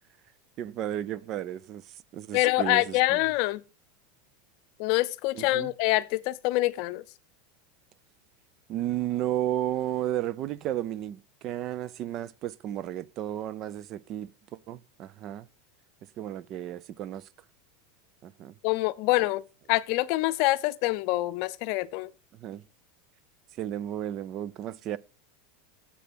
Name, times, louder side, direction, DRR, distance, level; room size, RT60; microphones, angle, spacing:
voice 1, 0.6-1.8 2.1-3.2 5.3-5.7 8.7-14.3 14.7-15.5 16.2-17.2 18.2-18.5 22.4-22.6 23.6-25.0, right 12 dB, 40° right, 0.5 m, -33 dB
voice 2, 2.3-3.6 4.8-7.0 18.6-19.4 19.7-22.1, left 19 dB, 60° left, 0.6 m, -25 dB
7.6 x 6.6 x 6.1 m
supercardioid pair, 130°, 0 cm